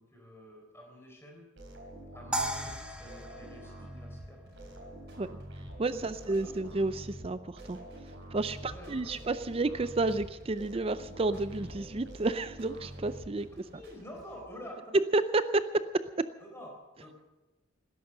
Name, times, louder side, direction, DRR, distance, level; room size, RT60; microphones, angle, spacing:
voice 1, 0.0-1.5 2.1-4.4 5.9-6.5 8.7-9.2 13.7-14.8 16.4-17.2, left 1 dB, 15° left, 1 dB, 4.0 m, -49 dB
sound 1, 1.6-13.8, right 1 dB, 70° right, 4.0 m, -46 dB
sound 2, 2.3-4.7, right 1 dB, 5° right, 1.4 m, -37 dB
sound 3, 4.5-14.5, equal, 55° right, 5.4 m, -58 dB
voice 2, 5.8-7.8 8.3-13.7 15.1-16.3, right 2 dB, 30° right, 13 dB, 0.5 m, -31 dB
19.5 x 11.0 x 6.6 m, 1.1 s
head